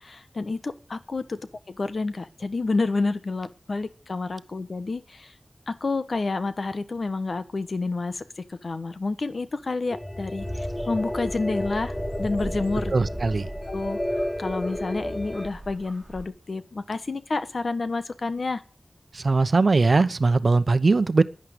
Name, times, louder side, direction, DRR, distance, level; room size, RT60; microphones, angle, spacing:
voice 1, 0.0-1.4 1.7-5.3 5.7-12.9 13.7-18.6, left 3 dB, 70° left, 1.2 m, -29 dB
sound 1, 9.9-15.5, left 1 dB, 25° left, 1.5 m, -31 dB
sound 2, 10.4-16.3, right 2 dB, 30° right, 2.1 m, -39 dB
voice 2, 12.9-13.5 19.1-21.2, right 3 dB, 70° right, 0.8 m, -20 dB
11.0 x 10.0 x 9.6 m
wide cardioid pair, 75°, 0 cm